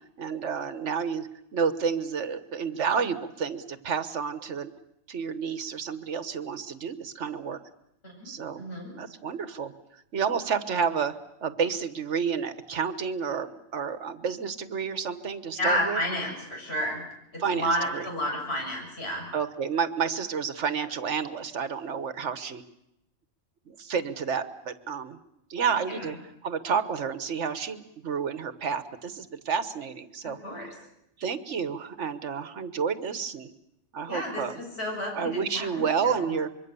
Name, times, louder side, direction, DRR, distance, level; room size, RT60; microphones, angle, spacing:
voice 1, 0.2-4.7 5.1-7.6 8.2-8.6 8.9-9.7 10.1-11.1 11.4-16.0 17.4-18.0 19.3-22.6 23.7-25.2 25.5-26.2 26.4-30.4 31.2-33.5 33.9-34.6 35.1-36.5, right 6 dB, 75° right, 12 dB, 1.5 m, -30 dB
voice 2, 8.6-8.9 15.6-17.0 17.3-19.3 25.9-26.2 30.2-30.7 34.1-36.3, equal, 60° left, 0 dB, 6.9 m, -31 dB
25.0 x 23.0 x 6.9 m, 0.82 s
omnidirectional pair, 1.2 m